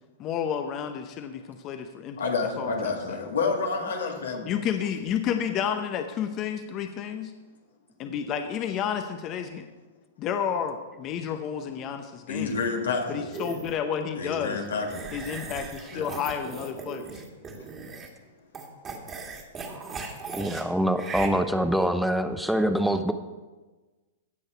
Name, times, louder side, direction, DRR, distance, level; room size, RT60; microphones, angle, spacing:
voice 1, 0.2-2.7 3.1-3.2 4.5-7.3 8.0-9.7 10.2-12.6 13.1-14.6 15.1-17.2, left 8 dB, 35° left, 7 dB, 0.8 m, -31 dB
voice 2, 2.2-4.5 12.3-13.2 14.2-15.1 15.9-16.1, left 4 dB, 85° left, 1 dB, 2.2 m, -29 dB
sound 1, 13.3-13.8 14.8-18.2 18.5-20.6 21.0-21.3, right 4 dB, 25° right, 1.9 m, -38 dB
voice 3, 20.3-23.1, equal, ahead, 8 dB, 0.6 m, -25 dB
16.0 x 6.5 x 4.5 m, 1.2 s
hypercardioid pair, 115°, 0 cm